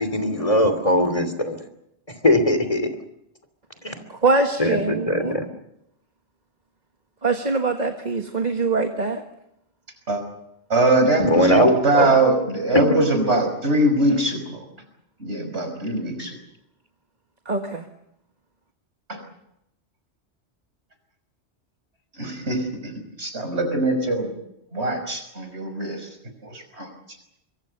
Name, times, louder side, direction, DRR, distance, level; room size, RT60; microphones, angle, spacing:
voice 1, 0.0-1.6 2.2-2.9 3.8-3.9 4.6-5.4 11.2-12.1, equal, 30° left, 9 dB, 2.9 m, -20 dB
voice 2, 4.2-5.3 7.2-9.2 17.4-17.8, right 3 dB, 40° right, 5 dB, 1.6 m, -23 dB
voice 3, 10.7-14.6 15.2-16.4 19.1-19.2 22.2-22.9 23.2-24.3 24.7-26.1 26.4-26.9, right 2 dB, 70° right, 6 dB, 5.6 m, -22 dB
24.5 x 24.0 x 6.7 m, 0.81 s
omnidirectional pair, 1.2 m